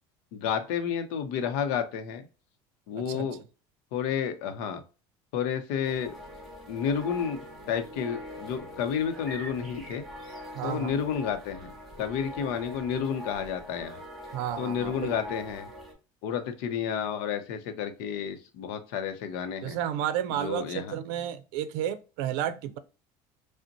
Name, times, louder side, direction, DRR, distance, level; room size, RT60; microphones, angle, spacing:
voice 1, 0.3-2.3 2.9-3.4 3.9-4.8 5.3-6.1 6.7-10.0 10.6-13.9 14.6-15.7 16.2-19.8 20.3-21.0, left 7 dB, 70° left, 0.7 m, -31 dB
voice 2, 2.9-3.3 10.5-11.0 14.3-14.9 19.6-22.8, right 10 dB, 75° right, 0.5 m, -32 dB
sound 1, 5.8-15.9, left 1 dB, ahead, 0.9 m, -43 dB
5.1 x 2.1 x 2.8 m
cardioid pair, 175°, 11 cm